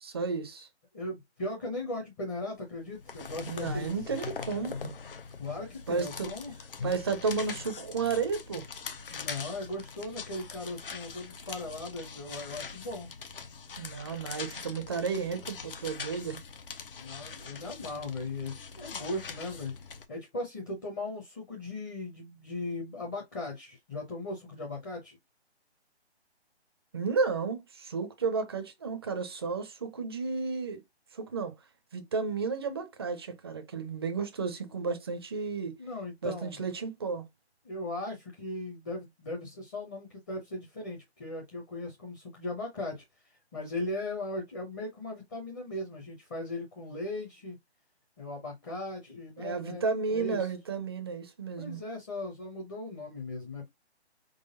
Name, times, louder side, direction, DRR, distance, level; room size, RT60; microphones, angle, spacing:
voice 1, 0.0-0.7 3.5-5.0 5.9-6.3 6.8-8.7 13.8-16.4 26.9-30.8 31.1-31.5 31.9-35.8 36.2-37.2 49.4-51.8, right 5 dB, 25° right, 0.6 m, -32 dB
voice 2, 0.9-3.9 5.4-6.5 9.1-13.1 17.0-19.7 20.1-25.2 34.6-34.7 35.8-36.6 37.6-43.0 43.5-47.6 48.2-50.5 51.6-53.7, left 2 dB, 15° left, 0.8 m, -38 dB
sound 1, 2.8-20.0, left 5 dB, 55° left, 0.8 m, -42 dB
4.6 x 3.9 x 2.6 m
figure-of-eight pair, 150°, 34 cm